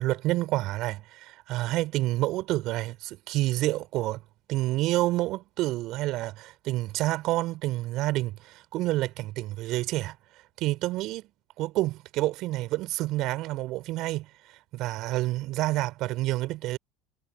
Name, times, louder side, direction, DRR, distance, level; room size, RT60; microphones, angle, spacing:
voice 1, 0.0-4.2 4.5-10.2 10.6-11.3 11.6-14.3 14.7-16.8, right 17 dB, 60° right, 3.1 m, -28 dB
hypercardioid pair, 70°, 0 cm